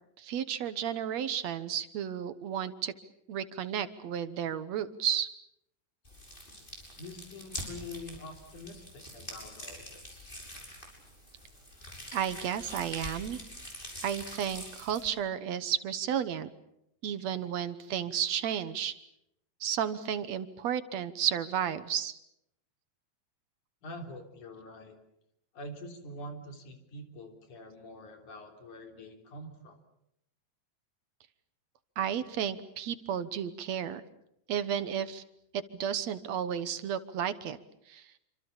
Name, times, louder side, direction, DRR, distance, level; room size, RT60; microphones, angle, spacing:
voice 1, 0.2-2.9 3.3-5.3 12.1-13.4 14.0-16.5 17.0-18.9 19.6-22.2 32.0-34.0 34.5-35.2 35.8-37.6 37.9-38.0, right 9 dB, 65° right, 13 dB, 2.2 m, -32 dB
sound 1, 6.0-15.1, equal, 15° left, 7.0 m, -45 dB
voice 2, 7.0-10.3 23.8-25.0 25.5-29.8, left 1 dB, 75° left, 5 dB, 4.9 m, -45 dB
28.0 x 26.0 x 7.2 m, 0.79 s
omnidirectional pair, 3.5 m